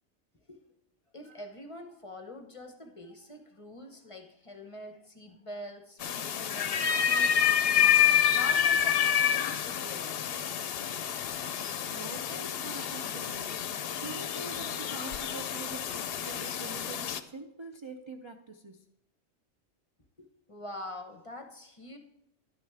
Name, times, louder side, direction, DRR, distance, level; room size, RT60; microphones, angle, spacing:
voice 1, 1.1-10.4 20.2-22.0, left 1 dB, 30° left, 5 dB, 0.8 m, -45 dB
sound 1, 6.0-17.2, left 9 dB, 65° left, 0.8 m, -28 dB
voice 2, 11.9-13.5 14.0-18.8, right 3 dB, 35° right, 4 dB, 0.5 m, -44 dB
11.5 x 9.7 x 3.4 m, 0.83 s
omnidirectional pair, 1.2 m